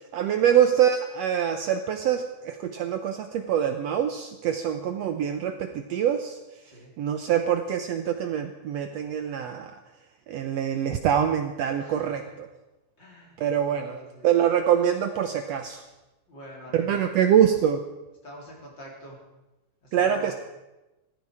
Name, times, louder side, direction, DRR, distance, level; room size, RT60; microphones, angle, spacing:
voice 1, 0.1-6.4 7.0-9.8 10.3-12.5 13.4-14.0 14.2-15.8 16.7-17.8 19.9-20.3, right 9 dB, 90° right, 6 dB, 1.4 m, -24 dB
voice 2, 11.8-12.2 13.0-13.4 13.6-14.3 16.3-17.5 18.2-19.2 19.8-20.3, right 1 dB, 30° left, -3 dB, 4.2 m, -45 dB
15.5 x 14.5 x 4.8 m, 1.0 s
omnidirectional pair, 4.0 m